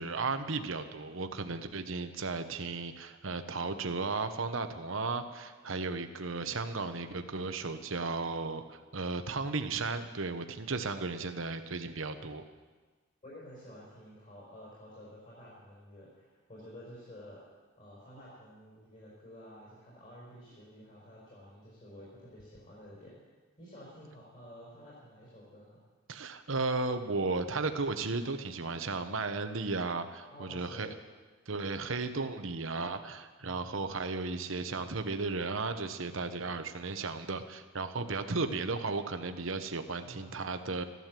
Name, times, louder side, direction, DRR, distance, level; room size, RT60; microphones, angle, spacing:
voice 1, 0.0-12.4 26.1-30.9 31.5-40.8, right 3 dB, 65° right, 8 dB, 1.0 m, -35 dB
voice 2, 13.2-16.2 16.5-17.4 17.8-25.8 30.3-30.9 33.4-33.9 40.0-40.3, equal, 35° left, -6 dB, 5.0 m, -51 dB
14.5 x 12.0 x 7.6 m, 1.4 s
head